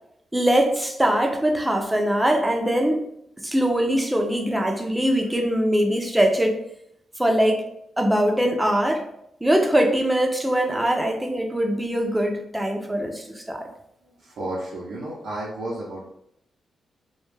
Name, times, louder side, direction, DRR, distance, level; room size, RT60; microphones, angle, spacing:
voice 1, 0.3-3.0 3.4-6.6 7.2-7.7 8.0-9.0 9.4-13.7, equal, 10° right, 3 dB, 0.3 m, -22 dB
voice 2, 14.0-16.1, right 1 dB, 85° right, -6 dB, 0.6 m, -32 dB
2.2 x 2.1 x 3.1 m, 0.76 s
wide cardioid pair, 135°, 0 cm